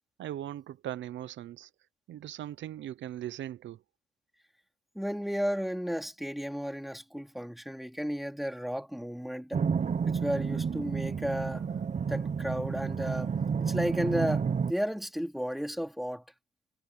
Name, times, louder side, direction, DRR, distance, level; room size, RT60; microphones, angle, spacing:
voice 1, 0.2-1.7 2.1-3.8, right 12 dB, 70° right, 0.8 m, -39 dB
voice 2, 4.9-9.6 10.1-11.7 12.1-13.3 13.6-16.3, equal, ahead, 3.0 m, -33 dB
sound 1, 9.5-14.7, right 6 dB, 35° right, 1.0 m, -30 dB
cardioid pair, 90°, 20 cm